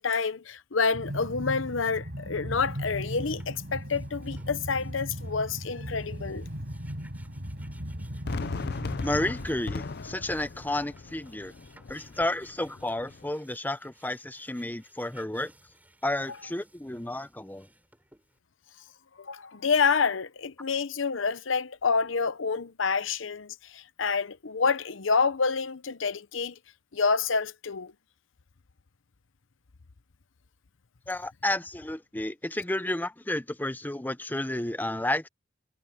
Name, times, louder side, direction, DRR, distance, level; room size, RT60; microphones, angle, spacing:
voice 1, 0.0-6.5 19.2-26.5 26.9-27.9, left 5 dB, 80° left, 0.9 m, -28 dB
Train, 0.9-9.8, equal, 60° right, 6.0 m, -38 dB
sound 1, 2.5-18.4, right 1 dB, 10° right, 5.5 m, -58 dB
Fireworks, 8.3-13.3, left 3 dB, 55° left, 0.6 m, -37 dB
voice 2, 9.0-11.5 11.9-15.5 16.0-17.7 31.1-35.3, left 1 dB, 10° left, 0.8 m, -31 dB
head